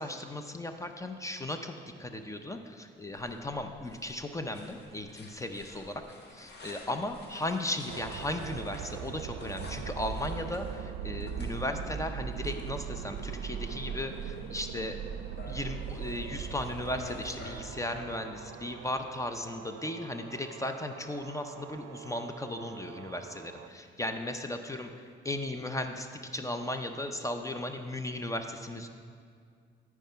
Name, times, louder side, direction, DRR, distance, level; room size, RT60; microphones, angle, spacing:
voice 1, 0.0-1.7 2.0-6.0 6.3-15.0 15.5-24.9 25.2-28.9, left 1 dB, 15° left, 6 dB, 0.6 m, -36 dB
sound 1, 3.1-17.6, left 2 dB, 55° left, 1.5 m, -51 dB
sound 2, 7.9-23.7, right 8 dB, 85° right, 0.5 m, -40 dB
13.0 x 4.7 x 5.6 m, 2.2 s
cardioid pair, 90°, 20 cm